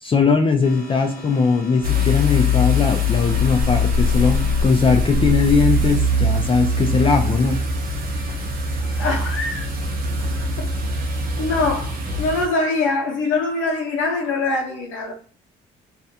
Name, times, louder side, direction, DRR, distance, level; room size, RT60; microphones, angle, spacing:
voice 1, 0.0-7.6, left 4 dB, 25° left, 0.4 m, -19 dB
sound 1, 0.6-5.3, right 1 dB, 45° left, 0.9 m, -38 dB
sound 2, 1.8-12.5, left 2 dB, 45° right, 0.8 m, -22 dB
voice 2, 9.0-9.7 11.4-11.9 12.2-15.1, left 3 dB, 85° left, 0.6 m, -23 dB
2.4 x 2.2 x 2.7 m
cardioid pair, 90°, 20 cm